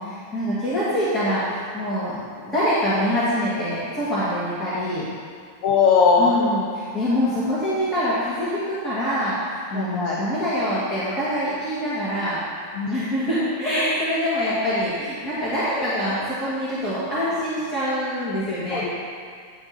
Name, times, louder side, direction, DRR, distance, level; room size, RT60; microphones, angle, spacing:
voice 1, 0.3-5.1 6.2-12.4 12.8-18.8, equal, 25° left, -11 dB, 2.2 m, -25 dB
voice 2, 5.6-6.4 9.7-10.2 12.7-12.9 18.7-18.9, left 5 dB, 45° left, -2 dB, 0.8 m, -19 dB
9.6 x 4.5 x 5.7 m, 2.1 s
figure-of-eight pair, 90°, 0 cm